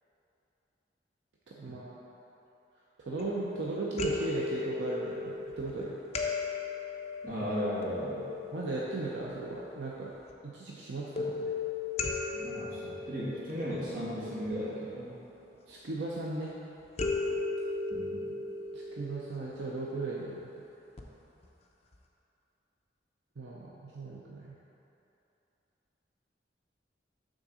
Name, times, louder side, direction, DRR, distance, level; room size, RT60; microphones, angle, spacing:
voice 1, 1.5-1.9 3.0-6.0 8.5-10.1 10.4-11.6 15.7-16.6 18.7-20.5 23.4-24.6, right 2 dB, 70° right, -5 dB, 0.6 m, -37 dB
sound 1, 3.1-3.6 4.0-9.6 11.2-14.4 17.0-20.2 21.0-21.1 21.4-21.5, left 3 dB, 35° left, 0.6 m, -36 dB
voice 2, 7.2-8.2 12.3-15.2 17.9-18.3, equal, 50° right, -8 dB, 1.4 m, -35 dB
6.2 x 3.9 x 6.1 m, 3.0 s
head